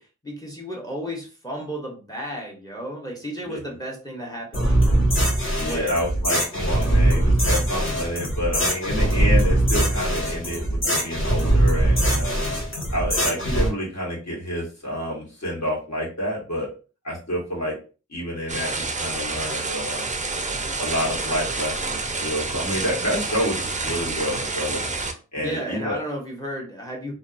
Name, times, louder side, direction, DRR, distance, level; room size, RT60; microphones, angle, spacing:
voice 1, 0.0-4.9 5.4-6.0 25.4-27.1, equal, 10° left, 0 dB, 0.8 m, -33 dB
sound 1, 4.5-13.7, right 1 dB, 40° left, 1.1 m, -21 dB
voice 2, 5.6-12.4 12.9-16.7 17.0-17.8 18.1-20.1 20.8-24.8 25.3-26.0, equal, 60° left, -3 dB, 1.4 m, -28 dB
sound 2, 18.5-25.1, right 3 dB, 25° right, 0.4 m, -28 dB
2.6 x 2.3 x 2.4 m, 0.35 s
wide cardioid pair, 85°, 30 cm